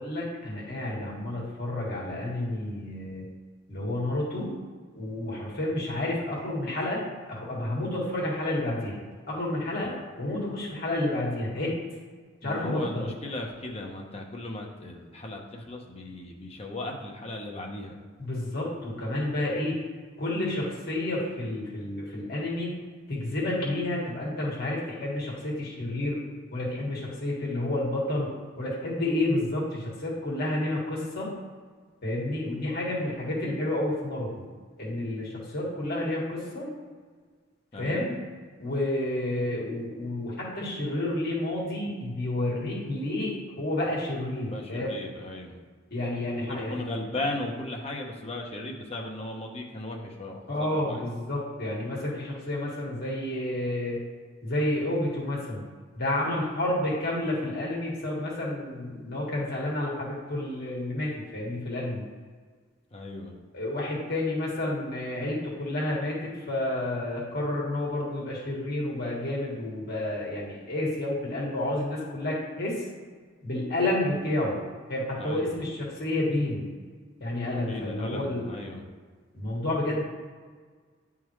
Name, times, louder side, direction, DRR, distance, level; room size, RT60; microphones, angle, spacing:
voice 1, 0.0-3.3 3.7-4.5 4.9-7.0 7.3-9.0 9.3-9.9 10.2-11.7 12.4-13.1 18.2-19.8 20.2-22.7 23.1-26.2 26.5-31.3 32.0-34.4 34.8-36.7 37.8-38.2 38.6-45.0 45.9-46.8 50.5-54.0 54.4-55.6 55.9-62.0 63.5-72.8 73.4-74.6 74.9-76.7 77.2-78.4 79.3-80.0, left 1 dB, 55° left, -4 dB, 1.6 m, -30 dB
voice 2, 12.4-18.0 37.7-38.1 44.4-45.6 46.4-51.0 62.9-63.4 75.2-75.6 77.5-78.8, left 2 dB, 30° left, 0 dB, 0.9 m, -37 dB
9.9 x 3.6 x 3.1 m, 1.5 s
head